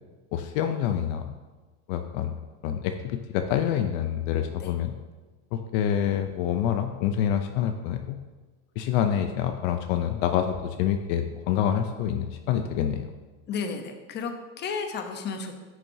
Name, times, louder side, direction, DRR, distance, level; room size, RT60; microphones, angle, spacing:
voice 1, 0.3-1.3 1.9-2.3 2.6-4.9 5.5-8.2 8.8-13.1, left 9 dB, 60° left, 6 dB, 0.6 m, -27 dB
voice 2, 13.5-15.6, left 5 dB, 30° left, 5 dB, 0.8 m, -33 dB
10.5 x 6.1 x 2.7 m, 1.3 s
supercardioid pair, 140°, 36 cm